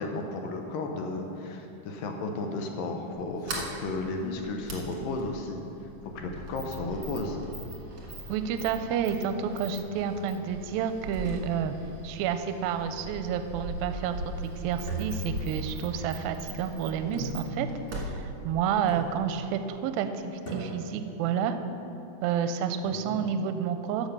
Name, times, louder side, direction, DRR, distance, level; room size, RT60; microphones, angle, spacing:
voice 1, 0.0-5.6 6.2-7.4 22.8-23.2, left 2 dB, 75° left, 3 dB, 2.3 m, -34 dB
Sliding door, 3.1-19.5, right 2 dB, 50° right, 1.8 m, -40 dB
voice 2, 8.3-11.7 12.0-17.7 18.2-21.6 22.2-24.1, right 8 dB, 80° right, 9 dB, 2.3 m, -30 dB
sound 1, 14.8-16.1 17.1-17.9 18.9-19.5 20.5-21.1, equal, 45° left, 0.7 m, -37 dB
12.5 x 7.0 x 5.4 m, 2.8 s
omnidirectional pair, 4.4 m